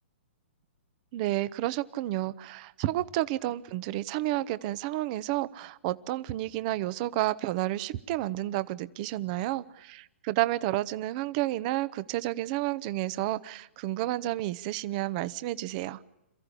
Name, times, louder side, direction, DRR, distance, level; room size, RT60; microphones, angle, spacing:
voice 1, 1.1-16.0, right 16 dB, 40° right, 1.0 m, -31 dB
28.0 x 15.0 x 10.0 m
hypercardioid pair, 135°, 7 cm